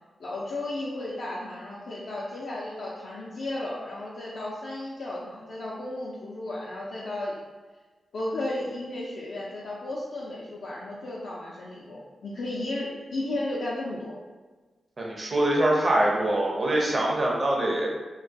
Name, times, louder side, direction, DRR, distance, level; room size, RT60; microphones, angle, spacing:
voice 1, 0.2-7.4 8.1-14.2, left 2 dB, 75° left, -7 dB, 0.4 m, -34 dB
voice 2, 15.0-17.9, right 1 dB, 45° right, -3 dB, 0.7 m, -24 dB
2.2 x 2.1 x 2.6 m, 1.3 s
supercardioid pair, 40°, 0 cm